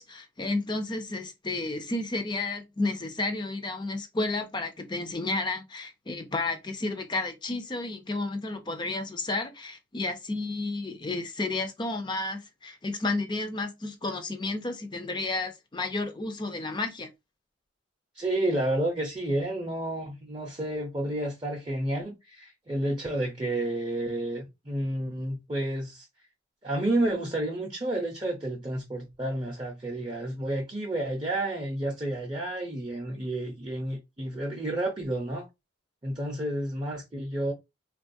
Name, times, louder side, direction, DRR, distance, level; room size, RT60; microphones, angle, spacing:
voice 1, 0.0-17.1, left 2 dB, 25° left, 0.4 m, -32 dB
voice 2, 18.1-26.1 26.6-35.4 36.0-37.5, right 1 dB, 25° right, 0.6 m, -30 dB
3.6 x 2.3 x 2.6 m
head